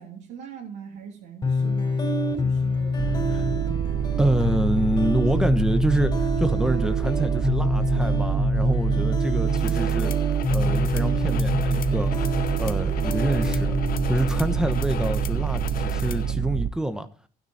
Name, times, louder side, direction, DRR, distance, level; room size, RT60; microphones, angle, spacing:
voice 1, 0.0-1.9 2.4-3.0, right 7 dB, 85° right, 3.0 m, -41 dB
sound 1, 1.4-16.4, left 2 dB, 25° left, 4.3 m, -27 dB
sound 2, 3.0-16.7, right 8 dB, 45° right, 0.8 m, -26 dB
voice 2, 4.2-12.1 12.6-13.8 14.1-17.1, right 1 dB, 5° right, 1.1 m, -27 dB
sound 3, 9.5-16.3, left 10 dB, 60° left, 0.8 m, -38 dB
12.0 x 10.0 x 4.3 m
cardioid pair, 110°, 17 cm